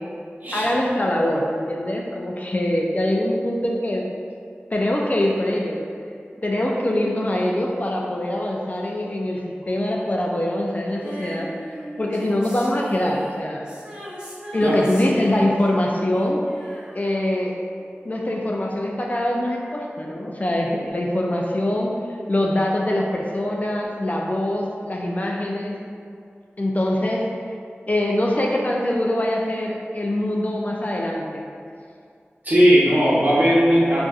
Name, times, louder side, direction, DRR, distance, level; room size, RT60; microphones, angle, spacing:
voice 1, 0.5-4.1 4.7-5.8 6.4-11.5 12.0-13.7 14.5-16.5 16.9-17.6 18.0-22.0 22.3-25.8 26.6-27.3 27.9-31.4, left 1 dB, 35° left, -2 dB, 0.3 m, -23 dB
Female singing, 11.0-17.6 17.9-18.0, equal, 20° right, 0.8 m, -38 dB
voice 2, 32.4-34.1, equal, 40° right, -9 dB, 1.0 m, -17 dB
3.9 x 2.5 x 2.3 m, 2.3 s
wide cardioid pair, 45°, 4 cm